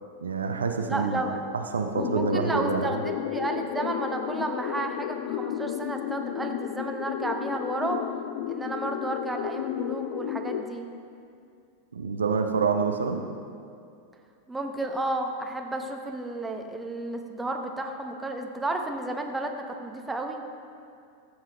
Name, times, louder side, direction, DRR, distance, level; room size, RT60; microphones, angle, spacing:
voice 1, 0.2-1.2 1.5-3.0 11.9-13.2, right 5 dB, 70° right, 5 dB, 0.6 m, -27 dB
voice 2, 0.9-1.4 2.0-8.1 8.5-10.9 14.5-20.4, right 2 dB, 10° right, 3 dB, 0.9 m, -32 dB
sound 1, 1.9-10.6, left 11 dB, 50° left, 0.4 m, -32 dB
14.0 x 7.5 x 3.4 m, 2.4 s
figure-of-eight pair, 90°, 0 cm